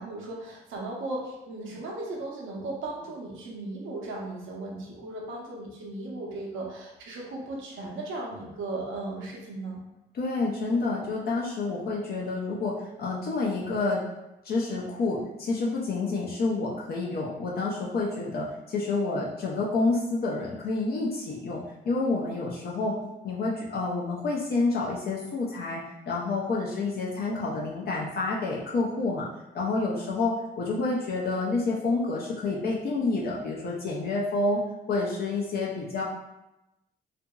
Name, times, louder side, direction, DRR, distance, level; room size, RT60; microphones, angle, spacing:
voice 1, 0.0-9.8, right 2 dB, 80° right, -2 dB, 0.8 m, -36 dB
voice 2, 10.1-14.0 14.4-23.0 23.2-29.3 29.5-34.6 34.9-36.0, left 3 dB, 50° left, -4 dB, 0.5 m, -28 dB
2.8 x 2.5 x 2.3 m, 0.95 s
cardioid pair, 90°, 20 cm